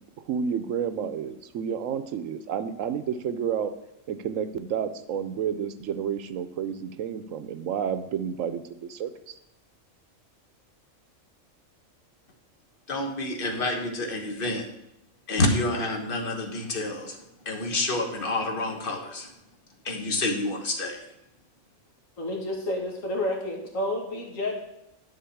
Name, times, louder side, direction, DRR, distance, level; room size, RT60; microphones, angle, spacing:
voice 1, 0.0-3.7 4.1-9.4, right 8 dB, 75° right, 11 dB, 1.1 m, -30 dB
voice 2, 12.9-14.7 15.3-19.3 19.8-21.0, left 2 dB, 40° left, 3 dB, 1.5 m, -28 dB
voice 3, 22.2-24.6, left 1 dB, 75° left, 0 dB, 2.2 m, -30 dB
10.5 x 4.0 x 7.1 m, 0.86 s
omnidirectional pair, 1.4 m